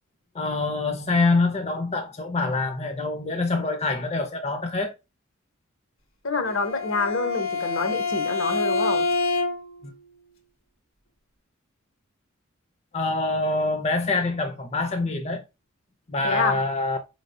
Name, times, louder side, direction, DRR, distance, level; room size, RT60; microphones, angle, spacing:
voice 1, 0.3-4.9 9.8-9.9 12.9-15.4 16.1-17.0, left 3 dB, 30° left, 0.6 m, -25 dB
voice 2, 6.2-9.1 16.2-16.6, left 3 dB, 65° left, 0.9 m, -27 dB
Bowed string instrument, 6.5-9.8, left 3 dB, 85° left, 1.5 m, -26 dB
4.6 x 3.2 x 2.6 m
head